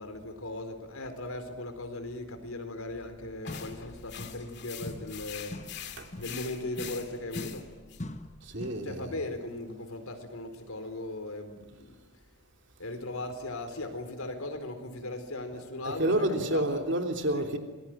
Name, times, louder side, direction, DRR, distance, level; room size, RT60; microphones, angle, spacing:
voice 1, 0.0-5.6 6.2-7.7 8.8-11.9 12.8-16.2 16.5-16.8 17.3-17.4, left 2 dB, 85° left, 4.2 m, -38 dB
sound 1, 3.2-3.3 3.5-4.6 4.8-8.9, left 1 dB, 35° left, 1.5 m, -43 dB
sound 2, 3.4-8.0, left 9 dB, 50° left, 2.4 m, -44 dB
voice 2, 8.4-9.1 15.8-17.6, right 1 dB, 55° right, 3.2 m, -29 dB
27.0 x 21.0 x 9.2 m
head